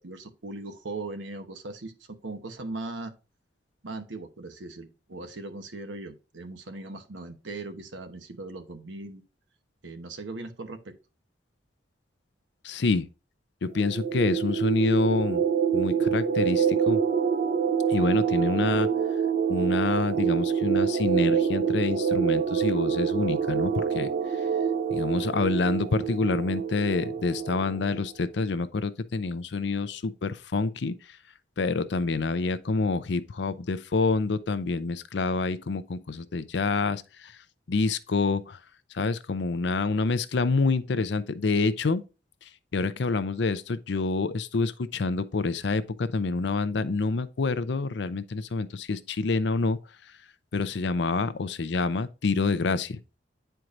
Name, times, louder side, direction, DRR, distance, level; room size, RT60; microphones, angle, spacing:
voice 1, 0.0-3.1 3.8-9.2 9.8-11.0, right 2 dB, 85° right, 1.0 m, -39 dB
voice 2, 12.6-13.1 13.6-15.4 15.7-17.0 17.9-18.9 19.5-24.1 24.9-30.9 31.6-37.3 37.7-38.6 38.9-42.0 42.7-49.8 50.5-53.0, left 3 dB, 70° left, 0.5 m, -27 dB
sound 1, 13.7-28.1, right 7 dB, 50° right, 0.6 m, -26 dB
9.8 x 4.6 x 2.5 m
head